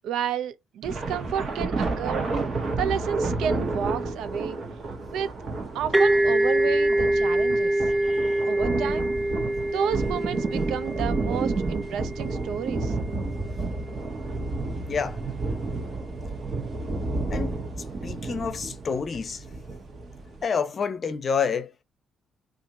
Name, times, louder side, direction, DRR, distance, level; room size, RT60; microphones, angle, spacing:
voice 1, 0.0-2.2 2.8-4.6 5.1-5.3 5.7-7.8 8.5-9.1 9.7-12.9, right 8 dB, 85° right, 0.4 m, -31 dB
sound 1, 0.8-20.4, right 3 dB, 50° right, 1.0 m, -31 dB
sound 2, 5.9-13.5, right 1 dB, 15° right, 0.3 m, -25 dB
voice 2, 8.0-8.4 14.7-15.2 17.3-19.4 20.4-21.8, left 6 dB, 45° left, 0.7 m, -29 dB
2.8 x 2.5 x 3.7 m
cardioid pair, 90°, 0 cm